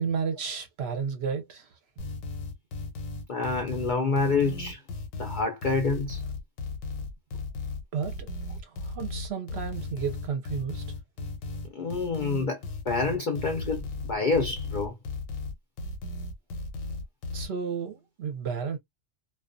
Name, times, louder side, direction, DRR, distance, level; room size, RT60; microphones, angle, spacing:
voice 1, 0.0-1.7 7.9-8.3 8.6-10.8 17.3-18.8, right 6 dB, 60° right, 0.7 m, -32 dB
sound 1, 2.0-17.5, left 3 dB, 90° left, 1.1 m, -36 dB
voice 2, 3.3-4.8 5.2-6.2 11.7-12.6 12.9-14.9, left 4 dB, 55° left, 0.5 m, -27 dB
2.3 x 2.3 x 2.4 m
omnidirectional pair, 1.4 m